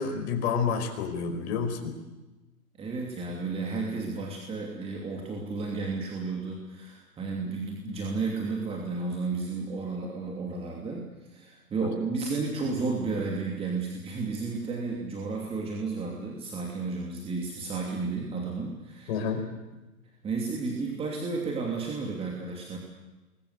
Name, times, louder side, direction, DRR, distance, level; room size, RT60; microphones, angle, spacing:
voice 1, 0.0-1.9 19.1-19.5, left 6 dB, 45° left, 4 dB, 5.3 m, -29 dB
voice 2, 2.8-19.3 20.2-22.8, right 4 dB, 10° right, 0 dB, 2.9 m, -32 dB
27.5 x 22.0 x 8.2 m, 1.1 s
hypercardioid pair, 140°, 45 cm